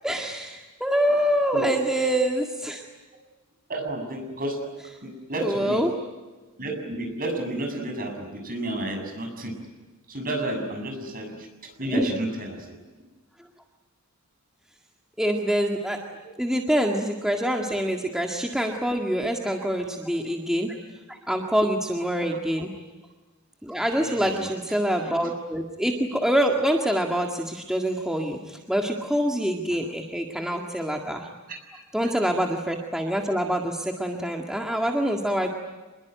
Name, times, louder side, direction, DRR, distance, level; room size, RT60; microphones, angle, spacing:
voice 1, 0.0-2.8 5.4-5.9 11.9-12.1 15.2-16.0 16.4-20.8 21.1-22.7 23.6-31.3 31.9-35.5, equal, 5° right, 1 dB, 1.9 m, -25 dB
voice 2, 3.7-4.6 5.0-5.8 6.6-9.5 10.1-11.5 11.8-12.6 23.9-24.4 29.7-29.8 30.5-30.6 31.5-31.6, right 1 dB, 40° right, 4 dB, 7.3 m, -31 dB
27.0 x 21.5 x 9.4 m, 1.2 s
head